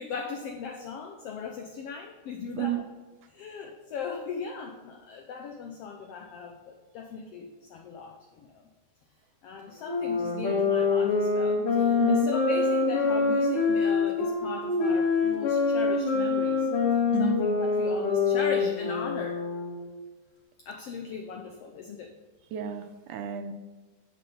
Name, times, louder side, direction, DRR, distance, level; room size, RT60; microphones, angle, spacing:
voice 1, 0.0-2.8 3.3-8.6 9.4-19.4 20.6-22.1, left 5 dB, 80° left, 3 dB, 1.3 m, -38 dB
sound 1, 9.8-19.9, left 4 dB, 50° left, 3.1 m, -25 dB
voice 2, 17.1-17.5 22.5-23.5, right 9 dB, 80° right, 7 dB, 2.2 m, -31 dB
9.4 x 6.7 x 5.4 m, 1.3 s
omnidirectional pair, 3.6 m